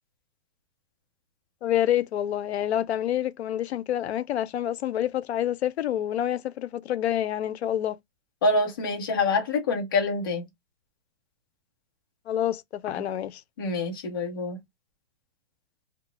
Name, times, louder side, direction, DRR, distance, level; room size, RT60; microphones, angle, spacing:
voice 1, 1.6-8.0 12.3-13.4, left 11 dB, 90° left, 0.5 m, -27 dB
voice 2, 8.4-10.4 13.6-14.6, left 3 dB, 20° left, 0.5 m, -26 dB
2.4 x 2.1 x 3.7 m
hypercardioid pair, 175°, 31 cm